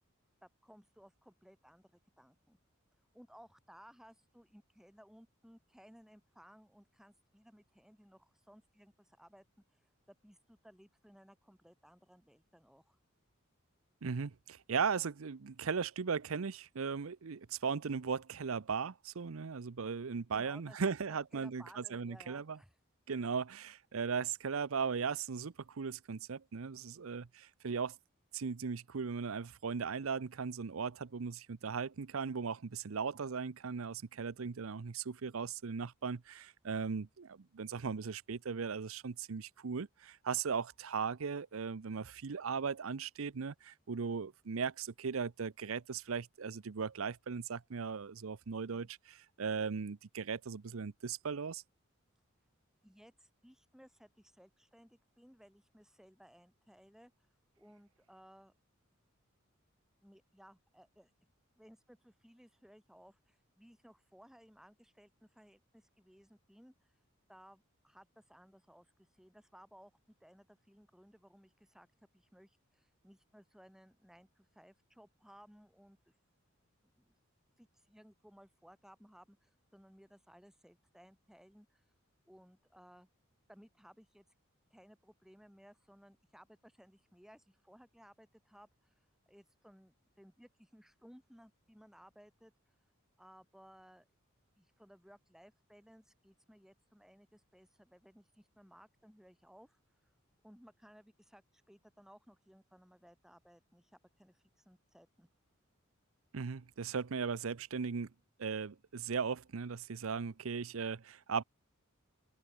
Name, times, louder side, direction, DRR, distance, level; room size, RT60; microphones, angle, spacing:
voice 1, 0.4-2.6 3.1-13.0 20.3-22.8 52.8-57.1 57.6-58.5 60.0-61.1 61.6-66.9 67.3-69.9 70.2-71.9 72.1-76.1 76.8-77.1 77.6-81.8 82.3-83.1 83.5-84.2 84.7-88.9 89.3-92.5 93.2-94.1 94.6-99.8 100.4-105.3, equal, ahead, 7.3 m, -61 dB
voice 2, 14.0-22.6 23.1-28.0 28.3-51.6 106.3-108.1 108.4-111.4, right 5 dB, 85° right, 0.6 m, -38 dB
head